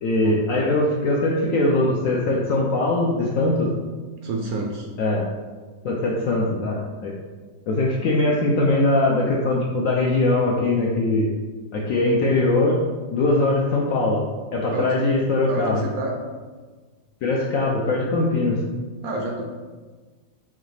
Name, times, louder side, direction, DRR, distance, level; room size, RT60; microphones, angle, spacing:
voice 1, 0.0-3.7 5.0-5.3 5.8-7.1 7.7-11.3 11.7-12.8 13.1-14.2 14.5-15.8 17.2-18.6, left 2 dB, 70° left, -2 dB, 0.8 m, -21 dB
voice 2, 4.2-4.9 14.7-14.9 15.5-16.2 19.0-19.4, right 2 dB, 70° right, 1 dB, 0.9 m, -28 dB
5.5 x 2.4 x 3.2 m, 1.4 s
omnidirectional pair, 1.8 m